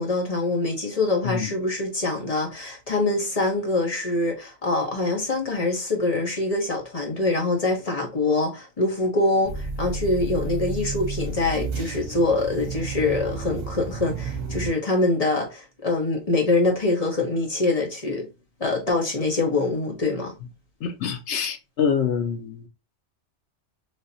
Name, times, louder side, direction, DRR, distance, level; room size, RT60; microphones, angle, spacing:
voice 1, 0.0-18.3 18.6-20.3, left 2 dB, 35° left, 1.0 m, -24 dB
sound 1, 9.4-14.7, right 4 dB, 55° right, 1.0 m, -31 dB
voice 2, 20.8-22.7, left 7 dB, 75° left, 1.0 m, -26 dB
3.3 x 2.7 x 2.6 m
omnidirectional pair, 1.2 m